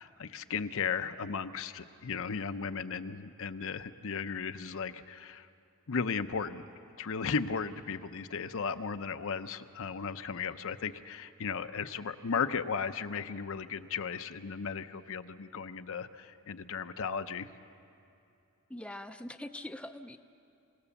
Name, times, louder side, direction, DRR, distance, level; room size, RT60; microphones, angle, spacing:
voice 1, 0.0-5.5 5.9-6.6 7.0-17.5, left 5 dB, 65° left, 10 dB, 0.7 m, -35 dB
voice 2, 18.7-20.2, left 1 dB, 5° left, 8 dB, 0.5 m, -43 dB
26.5 x 17.5 x 7.1 m, 2.6 s
head